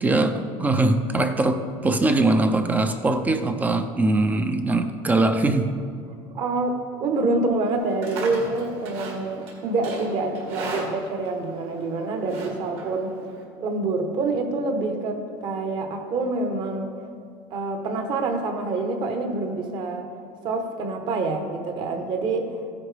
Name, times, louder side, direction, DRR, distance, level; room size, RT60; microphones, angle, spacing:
voice 1, 0.0-5.7, right 2 dB, 15° right, 8 dB, 0.4 m, -22 dB
voice 2, 6.3-13.1 13.6-16.9 17.5-20.1 20.4-22.6, right 3 dB, 40° right, 5 dB, 1.1 m, -26 dB
Livestock farm animals working animals, 7.7-13.4, right 2 dB, 55° right, 2.1 m, -38 dB
14.5 x 9.7 x 3.4 m, 2.3 s
cardioid pair, 165°, 12 cm